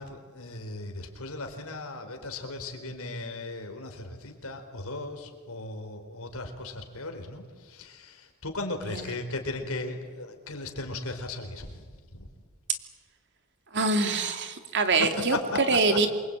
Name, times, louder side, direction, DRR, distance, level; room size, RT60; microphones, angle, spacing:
voice 1, 0.0-12.3 14.9-16.1, left 2 dB, 70° left, 5 dB, 4.3 m, -37 dB
voice 2, 13.7-15.4 15.7-16.1, right 3 dB, 55° right, 7 dB, 2.7 m, -24 dB
28.0 x 23.0 x 8.9 m, 1.5 s
head